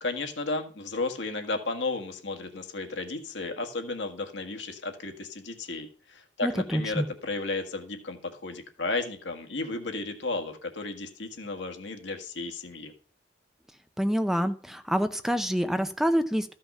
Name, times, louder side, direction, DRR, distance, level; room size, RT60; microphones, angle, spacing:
voice 1, 0.0-12.9, left 3 dB, 85° left, 4 dB, 1.6 m, -33 dB
voice 2, 6.4-7.1 14.0-16.5, equal, ahead, 9 dB, 0.5 m, -27 dB
13.5 x 5.7 x 5.4 m, 0.42 s
head